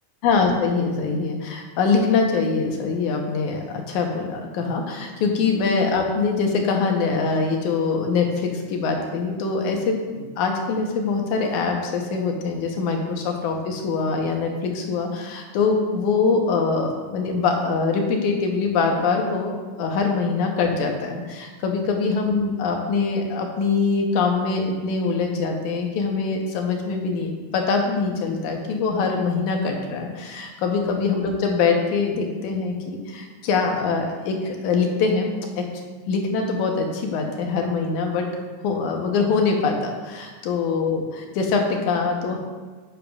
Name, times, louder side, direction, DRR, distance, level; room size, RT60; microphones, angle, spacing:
voice 1, 0.2-19.5 19.8-35.3 35.6-38.3 38.6-42.4, left 4 dB, 85° left, 2 dB, 2.5 m, -23 dB
10.0 x 8.7 x 2.4 m, 1.4 s
omnidirectional pair, 3.3 m